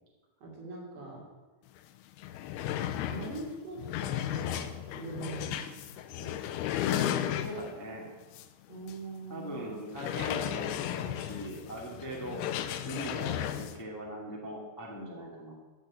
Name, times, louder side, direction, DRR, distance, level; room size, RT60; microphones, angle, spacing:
voice 1, 0.4-1.3 3.1-5.9 6.1-6.4 8.7-9.8 12.2-12.5, right 3 dB, 70° right, -3 dB, 5.3 m, -43 dB
sound 1, 1.8-1.9 2.1-7.8 8.3-8.5 8.9-9.0 9.9-13.8, left 11 dB, 80° left, 2.6 m, -34 dB
voice 2, 6.9-8.1 9.3-12.5 12.8-15.5, equal, 10° left, -2 dB, 0.8 m, -40 dB
12.5 x 6.4 x 8.7 m, 1.2 s
omnidirectional pair, 4.8 m